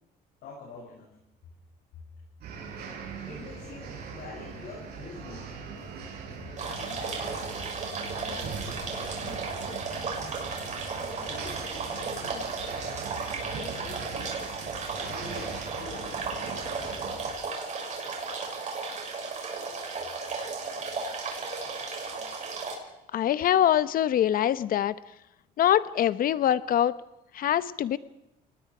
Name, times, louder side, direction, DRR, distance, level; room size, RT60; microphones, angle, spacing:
voice 1, 0.4-1.1 3.3-5.5 6.4-7.1 8.1-9.5 11.1-12.5 13.4-14.6 15.1-16.2, left 4 dB, 75° left, -5 dB, 7.4 m, -45 dB
sound 1, 2.4-17.3, right 5 dB, 70° right, 7.9 m, -41 dB
sound 2, 6.6-22.7, right 4 dB, 45° right, 6.5 m, -35 dB
voice 2, 23.1-24.9 25.6-26.9 27.3-28.0, left 11 dB, 55° left, 16 dB, 0.9 m, -24 dB
29.0 x 19.5 x 5.0 m, 0.90 s
cardioid pair, 110°, 17 cm